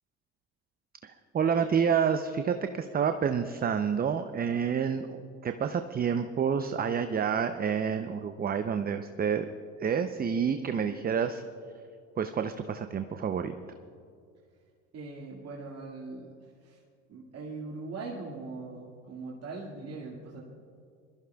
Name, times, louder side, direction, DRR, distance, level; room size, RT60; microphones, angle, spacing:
voice 1, 1.0-9.5 9.8-11.4 12.2-13.5, right 7 dB, 25° right, 8 dB, 0.6 m, -29 dB
voice 2, 14.9-16.8 17.1-20.5, right 3 dB, 45° right, -4 dB, 2.1 m, -41 dB
22.0 x 14.5 x 2.3 m, 2.3 s
hypercardioid pair, 75°, 35 cm